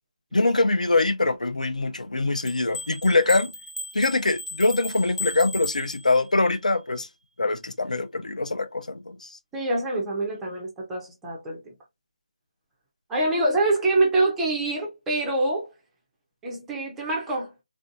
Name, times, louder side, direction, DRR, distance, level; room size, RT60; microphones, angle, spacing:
voice 1, 0.3-3.5 3.9-7.1 7.4-9.3, left 2 dB, 90° left, 0.6 m, -23 dB
sound 1, 2.5-6.4, left 2 dB, 50° left, 0.7 m, -36 dB
voice 2, 9.5-11.7 13.1-15.7 16.4-17.5, right 2 dB, 5° right, 0.3 m, -25 dB
3.4 x 2.5 x 2.5 m
figure-of-eight pair, 170°, 4 cm